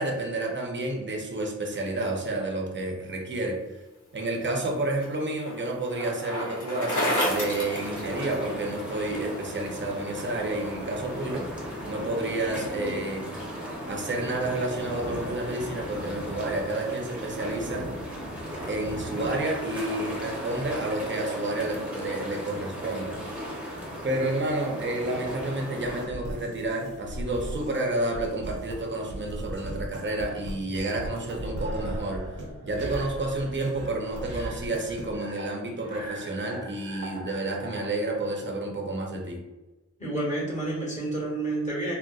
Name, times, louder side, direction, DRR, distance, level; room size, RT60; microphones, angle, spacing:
voice 1, 0.0-3.6 4.1-11.5 11.9-13.2 13.8-17.9 18.7-23.2 24.0-32.2 32.6-39.4, right 2 dB, 40° right, 1 dB, 0.7 m, -30 dB
Bicycle, 4.3-8.7, equal, 75° left, 0.9 m, -30 dB
sound 1, 7.3-26.1, equal, 5° right, 0.9 m, -36 dB
sound 2, 25.8-37.9, right 1 dB, 85° right, 0.8 m, -38 dB
voice 2, 40.0-42.0, right 2 dB, 25° left, -6 dB, 1.4 m, -29 dB
3.9 x 2.1 x 2.3 m, 1.1 s
wide cardioid pair, 80°, 30 cm